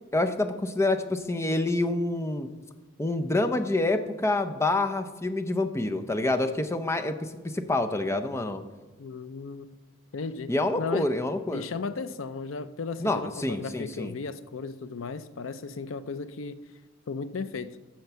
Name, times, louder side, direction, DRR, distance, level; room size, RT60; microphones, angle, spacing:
voice 1, 0.1-2.5 3.0-7.2 7.5-8.6 10.5-11.6 13.0-14.1, left 2 dB, 15° left, 7 dB, 0.6 m, -27 dB
voice 2, 9.0-9.7 10.1-11.2 11.5-16.6 17.1-17.8, left 4 dB, 90° left, 13 dB, 0.5 m, -35 dB
13.0 x 4.5 x 6.9 m, 1.2 s
head